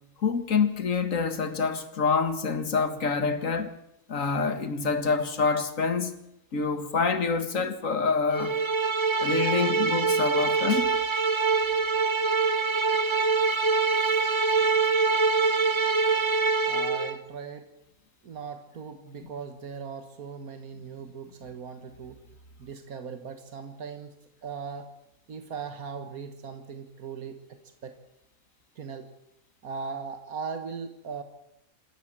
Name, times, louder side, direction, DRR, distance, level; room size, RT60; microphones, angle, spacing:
voice 1, 0.2-3.7 4.1-6.2 6.5-8.6 9.2-10.9, left 5 dB, 65° left, 2.1 m, -26 dB
sound 1, 8.3-17.2, right 4 dB, 25° right, 0.7 m, -24 dB
voice 2, 16.7-17.7 18.2-22.2 22.6-24.1 24.4-24.9 25.3-28.0 28.8-29.1 29.6-31.2, right 5 dB, 85° right, 1.9 m, -39 dB
26.0 x 13.5 x 7.4 m
omnidirectional pair, 1.5 m